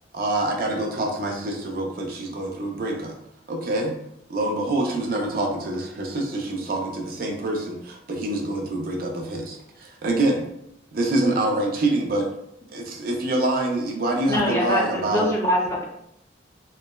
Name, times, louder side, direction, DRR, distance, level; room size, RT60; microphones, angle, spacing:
voice 1, 0.1-3.1 3.5-3.9 4.3-10.5 10.9-12.3 12.7-15.3, right 2 dB, 55° right, 1 dB, 0.5 m, -26 dB
voice 2, 14.3-15.8, equal, 15° left, -2 dB, 0.4 m, -23 dB
3.1 x 2.0 x 2.2 m, 0.77 s
head